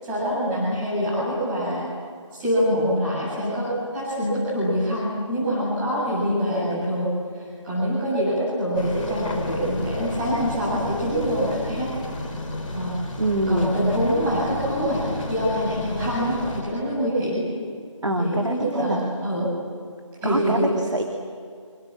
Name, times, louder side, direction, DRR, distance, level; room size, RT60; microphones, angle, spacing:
voice 1, 0.0-1.8 2.3-7.1 7.3-11.9 12.7-12.9 13.5-15.0 15.3-17.5 18.2-19.5 20.2-20.7, equal, 10° right, -9 dB, 7.6 m, -25 dB
sound 1, 8.7-16.6, left 2 dB, 15° left, 3.4 m, -32 dB
voice 2, 13.2-13.7 18.0-19.0 20.2-21.0, right 1 dB, 65° right, 3 dB, 2.8 m, -25 dB
27.5 x 27.0 x 7.6 m, 2.2 s
figure-of-eight pair, 160°, 17 cm